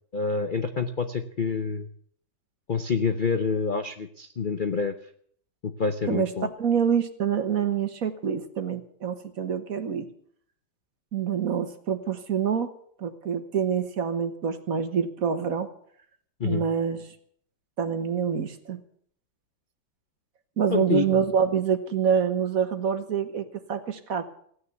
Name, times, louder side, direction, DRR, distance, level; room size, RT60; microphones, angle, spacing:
voice 1, 0.1-1.9 2.7-4.9 5.6-6.5 16.4-16.6 20.7-21.2, left 4 dB, 85° left, 8 dB, 0.4 m, -27 dB
voice 2, 6.6-10.1 11.1-12.7 13.0-15.7 16.4-17.0 17.8-18.8 20.6-24.2, right 7 dB, 50° right, 9 dB, 1.5 m, -26 dB
16.0 x 9.6 x 8.1 m, 0.62 s
omnidirectional pair, 2.1 m